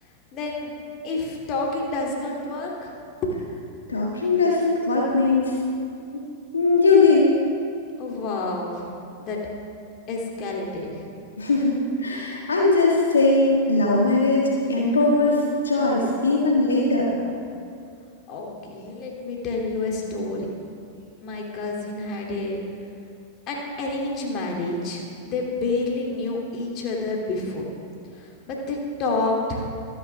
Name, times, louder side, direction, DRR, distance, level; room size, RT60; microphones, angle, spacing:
voice 1, 0.3-0.7 1.0-3.0 3.2-3.4 8.0-9.4 10.1-11.0 18.3-20.5 21.2-22.6 23.5-27.7 28.1-29.7, left 2 dB, 35° left, -1 dB, 2.7 m, -29 dB
voice 2, 3.9-5.5 6.1-6.2 6.5-7.3 11.4-14.4 14.7-17.1, left 3 dB, 70° left, -3 dB, 1.6 m, -20 dB
24.5 x 9.1 x 3.5 m, 2.4 s
figure-of-eight pair, 95°, 0 cm